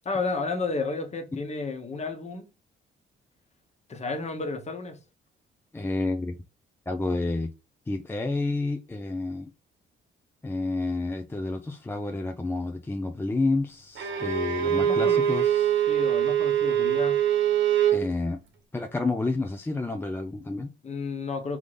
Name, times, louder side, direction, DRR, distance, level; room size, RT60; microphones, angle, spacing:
voice 1, 0.0-2.4 3.9-5.0 14.7-15.2 15.9-17.2 20.8-21.6, left 3 dB, 35° left, 1.1 m, -32 dB
voice 2, 5.7-6.4 6.9-7.5 7.9-9.5 10.4-15.7 17.9-18.4 18.7-20.7, left 2 dB, 10° left, 0.5 m, -29 dB
Bowed string instrument, 14.0-18.1, right 9 dB, 70° right, 1.3 m, -23 dB
3.8 x 3.5 x 3.3 m
cardioid pair, 90°, 20 cm